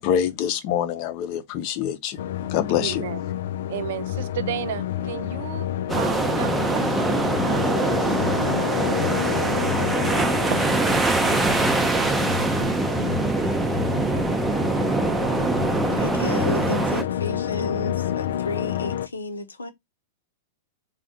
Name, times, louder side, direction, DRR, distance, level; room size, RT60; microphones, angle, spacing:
voice 1, 0.0-2.2 2.5-3.1, left 9 dB, 45° left, 0.8 m, -25 dB
sound 1, 2.2-19.1, left 11 dB, 60° left, 0.4 m, -28 dB
voice 2, 2.8-3.2 3.7-8.2, right 11 dB, 60° right, 0.5 m, -34 dB
sound 2, 5.9-17.0, right 3 dB, 10° right, 0.6 m, -23 dB
sound 3, 6.7-8.4 10.5-13.0 13.3-13.5, right 8 dB, 45° right, 1.0 m, -39 dB
voice 3, 16.0-19.7, left 2 dB, 85° left, 0.9 m, -32 dB
4.0 x 2.5 x 3.8 m
figure-of-eight pair, 100°, 0 cm